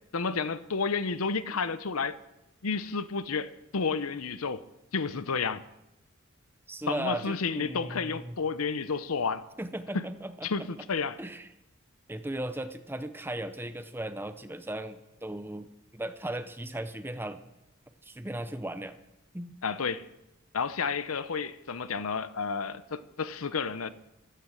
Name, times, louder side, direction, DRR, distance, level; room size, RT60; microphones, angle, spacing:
voice 1, 0.1-2.1 2.6-4.6 4.9-5.6 6.9-9.5 9.9-10.0 10.4-11.2 19.6-20.1 20.5-23.9, left 5 dB, 90° left, 0.8 m, -31 dB
voice 2, 6.7-8.4 9.6-10.7 11.2-11.5 12.1-15.7 15.9-17.4 18.0-19.0 19.3-19.5, right 1 dB, 10° right, 0.6 m, -37 dB
13.5 x 13.0 x 7.6 m
head